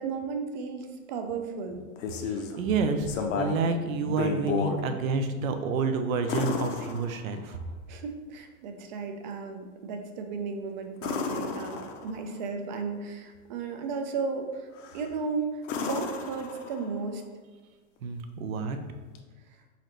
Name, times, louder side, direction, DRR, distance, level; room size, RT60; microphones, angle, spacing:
voice 1, 0.0-1.8 7.9-14.7 14.9-17.2, right 4 dB, 35° right, 5 dB, 0.4 m, -34 dB
sound 1, 1.7-2.6 3.1-3.7 4.1-4.8 6.3-7.5 11.0-12.3 14.8-15.1 15.6-17.0 19.2-19.3, left 5 dB, 65° left, 0.7 m, -32 dB
voice 2, 2.6-7.6 18.0-18.8, right 4 dB, 85° right, 7 dB, 0.7 m, -29 dB
4.1 x 3.9 x 3.2 m, 1.3 s
supercardioid pair, 155°, 40 cm